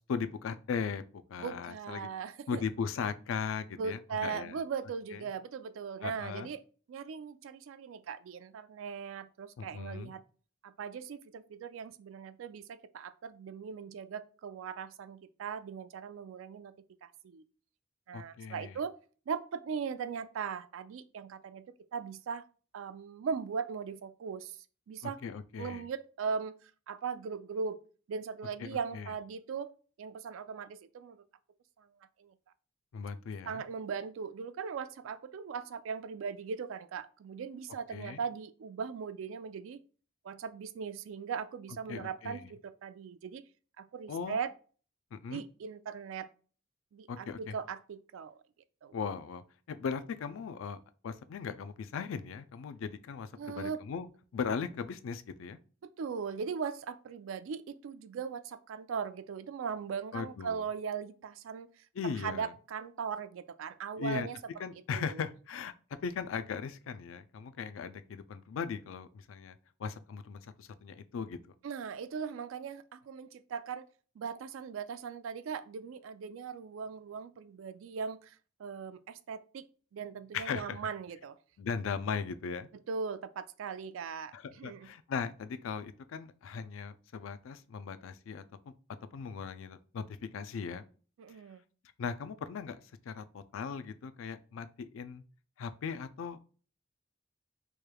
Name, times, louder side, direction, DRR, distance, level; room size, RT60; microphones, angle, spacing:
voice 1, 0.1-2.1 2.5-4.6 5.1-5.2 6.0-6.5 9.6-10.1 18.1-18.8 25.0-25.8 28.6-29.1 32.9-33.6 37.9-38.2 41.9-42.5 44.1-44.4 45.1-45.4 47.1-47.5 48.9-50.8 51.0-54.1 54.3-55.6 60.1-60.6 62.0-62.5 64.0-64.3 64.6-65.7 66.0-69.5 69.8-71.4 80.3-80.8 81.6-82.7 84.3-88.4 89.1-90.0 90.3-90.9 92.0-92.8 93.1-95.2 95.6-96.5, left 6 dB, 80° left, 0.3 m, -38 dB
voice 2, 1.4-2.6 3.8-6.6 6.9-10.2 10.6-16.7 17.0-17.4 18.1-18.9 19.3-21.7 21.9-22.4 22.7-24.6 24.9-25.2 25.6-27.8 28.1-29.7 30.0-31.2 31.8-31.9 32.2-32.3 33.5-39.8 40.2-43.4 43.8-44.5 45.3-46.3 46.9-48.4 48.8-48.9 53.4-53.8 55.8-61.7 62.0-64.4 64.9-65.3 71.6-73.9 74.2-79.6 79.9-81.4 82.9-84.9 91.2-91.6, right 6 dB, 80° right, 0.3 m, -39 dB
4.7 x 3.1 x 2.2 m
head